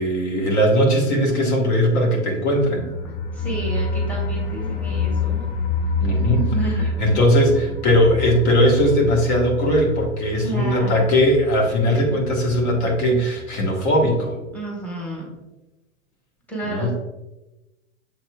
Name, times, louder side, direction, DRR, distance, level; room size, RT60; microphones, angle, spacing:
voice 1, 0.0-2.9 6.0-6.4 7.0-14.4 16.6-16.9, equal, 60° left, -1 dB, 1.4 m, -19 dB
sound 1, 2.6-13.3 13.6-13.7 14.0-14.1, left 3 dB, 40° left, 0.7 m, -27 dB
voice 2, 3.3-5.4 6.1-6.8 10.3-11.3 14.5-15.3 16.5-16.9, right 1 dB, 5° left, -4 dB, 1.4 m, -30 dB
7.3 x 2.9 x 2.3 m, 1.0 s
hypercardioid pair, 115°, 38 cm